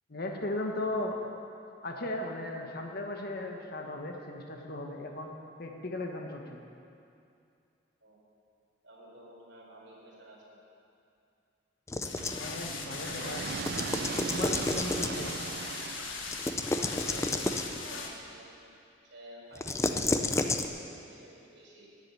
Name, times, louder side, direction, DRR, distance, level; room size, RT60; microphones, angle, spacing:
voice 1, 0.1-1.2 1.8-5.3 5.6-6.6 12.4-13.6 14.3-15.3, left 2 dB, 50° left, 2 dB, 1.4 m, -36 dB
voice 2, 8.8-10.6 16.6-18.8 19.0-20.5 20.9-21.9, right 1 dB, 70° right, -4 dB, 4.4 m, -50 dB
sound 1, 11.9-12.5 13.5-15.4 16.3-17.8 19.5-20.7, left 2 dB, 15° left, 0.6 m, -31 dB
sound 2, 12.0-18.1, left 4 dB, 90° left, 1.7 m, -39 dB
sound 3, 12.2-16.6, right 6 dB, 55° right, 0.4 m, -39 dB
14.0 x 7.9 x 9.7 m, 2.6 s
head